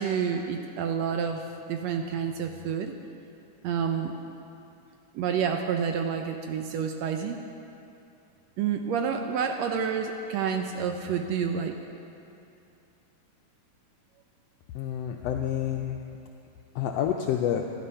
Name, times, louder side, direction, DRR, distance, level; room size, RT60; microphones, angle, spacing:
voice 1, 0.0-1.4 1.7-3.0 3.6-4.1 5.2-7.4 8.6-11.8, right 7 dB, 75° right, 5 dB, 1.6 m, -29 dB
voice 2, 14.7-16.0 16.7-17.6, left 10 dB, 80° left, 3 dB, 1.4 m, -28 dB
12.5 x 12.0 x 5.6 m, 2.7 s
omnidirectional pair, 3.5 m